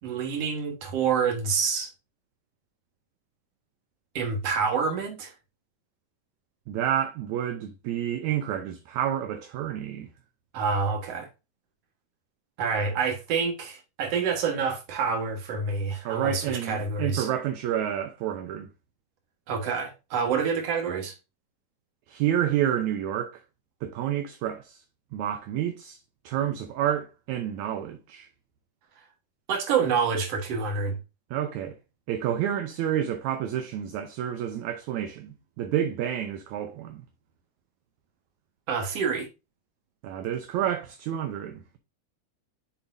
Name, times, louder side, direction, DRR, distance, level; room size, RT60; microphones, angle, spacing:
voice 1, 0.0-1.9 4.2-5.3 10.5-11.3 12.6-17.3 19.5-21.2 29.5-31.0 38.7-39.3, right 5 dB, 55° right, 2.2 m, -27 dB
voice 2, 6.7-10.1 16.1-18.7 22.1-23.4 23.8-24.8 25.1-26.0 26.2-28.3 31.3-31.8 32.1-37.0 40.0-41.8, right 10 dB, 75° right, 1.8 m, -29 dB
7.0 x 5.8 x 2.6 m
omnidirectional pair, 3.9 m